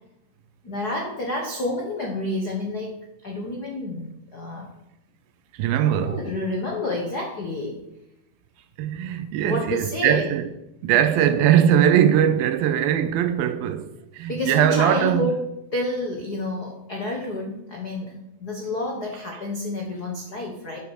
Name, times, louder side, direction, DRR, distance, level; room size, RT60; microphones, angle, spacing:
voice 1, 0.6-2.9 3.2-4.7 6.0-7.8 9.4-10.3 14.3-15.4 15.7-20.8, left 2 dB, 65° left, 0.9 m, -29 dB
voice 2, 5.5-6.3 8.8-10.5 10.8-15.3, right 10 dB, 85° right, 2.5 m, -20 dB
10.5 x 7.1 x 6.3 m
omnidirectional pair, 4.3 m